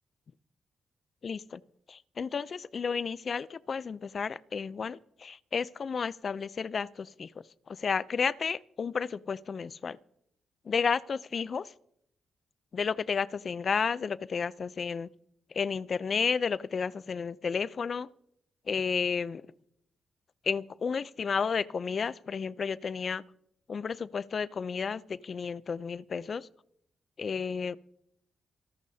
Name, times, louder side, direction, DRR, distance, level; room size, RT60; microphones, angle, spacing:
voice 1, 1.2-1.6 1.9-7.3 7.7-10.0 10.7-11.7 12.7-15.1 15.5-18.1 18.7-19.4 20.4-23.2 23.7-26.5 27.2-27.8, left 5 dB, 55° left, 17 dB, 0.5 m, -32 dB
26.5 x 11.5 x 2.8 m, 0.74 s
cardioid pair, 65°, 0 cm